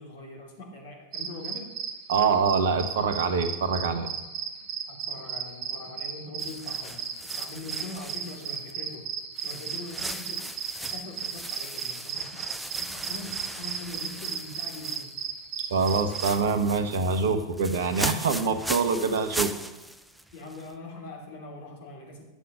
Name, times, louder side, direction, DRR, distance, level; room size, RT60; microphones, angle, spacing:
voice 1, 0.0-1.7 4.9-9.1 9.4-15.1 20.3-22.2, left 2 dB, 55° left, -1 dB, 3.1 m, -42 dB
sound 1, 1.1-16.3, right 7 dB, 35° right, 1.4 m, -35 dB
voice 2, 2.1-4.1 15.7-19.5, right 5 dB, 60° right, 8 dB, 1.1 m, -25 dB
sound 2, 6.4-8.9 9.4-15.3 15.6-20.7, right 1 dB, 5° right, 0.5 m, -38 dB
11.5 x 7.7 x 5.3 m, 1.1 s
figure-of-eight pair, 90°, 0 cm